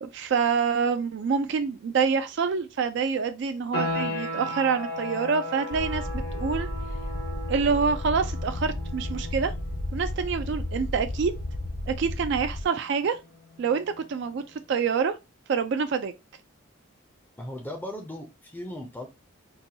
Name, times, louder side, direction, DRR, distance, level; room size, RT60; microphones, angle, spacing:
voice 1, 0.0-6.7 7.5-9.5 9.9-11.4 11.9-13.2 13.6-15.2 15.5-16.1, right 5 dB, 55° right, 0.3 m, -26 dB
sound 1, 3.7-14.2, left 1 dB, 85° left, 1.2 m, -37 dB
sound 2, 5.7-12.6, left 1 dB, 65° left, 0.7 m, -33 dB
voice 2, 17.4-19.1, left 1 dB, 10° left, 0.5 m, -37 dB
4.0 x 2.2 x 2.7 m
head